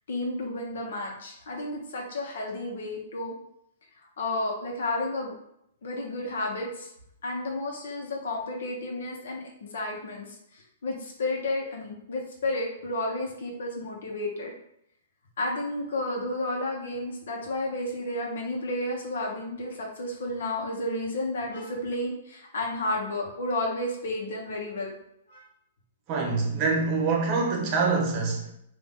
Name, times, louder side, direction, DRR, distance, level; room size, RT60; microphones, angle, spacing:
voice 1, 0.1-3.3 4.0-5.4 5.8-6.9 7.2-14.5 15.4-24.9 25.3-25.5, left 2 dB, 75° left, -1 dB, 1.2 m, -32 dB
voice 2, 26.1-28.5, right 4 dB, 30° right, 1 dB, 0.9 m, -25 dB
3.9 x 2.7 x 3.7 m, 0.77 s
hypercardioid pair, 165°, 0 cm